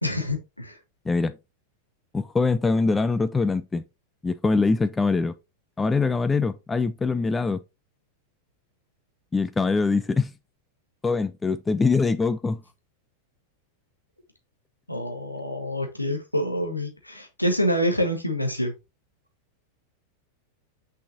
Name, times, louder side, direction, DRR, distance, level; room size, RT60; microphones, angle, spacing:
voice 1, 0.0-0.8 14.9-18.7, equal, 85° left, 1.4 m, -26 dB
voice 2, 2.1-3.8 4.2-5.3 5.8-7.6 9.3-10.3 11.0-12.6, left 4 dB, 10° left, 0.4 m, -23 dB
6.2 x 5.5 x 2.7 m
figure-of-eight pair, 90°, 0 cm